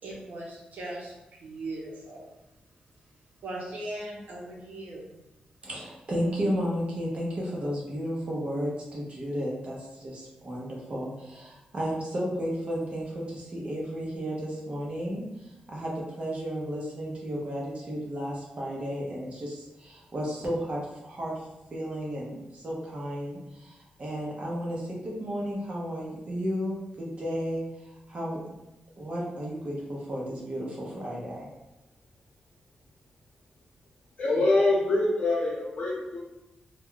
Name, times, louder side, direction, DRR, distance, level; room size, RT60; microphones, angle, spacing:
voice 1, 0.0-2.2 3.4-5.1, right 1 dB, 75° right, -3 dB, 0.8 m, -39 dB
voice 2, 5.6-15.2 15.7-21.3 21.7-27.6 28.1-28.4 29.0-31.5, equal, 45° right, -4 dB, 0.7 m, -33 dB
voice 3, 34.2-36.2, left 2 dB, 55° left, -7 dB, 0.7 m, -24 dB
2.3 x 2.2 x 3.6 m, 0.97 s
wide cardioid pair, 110°, 3 cm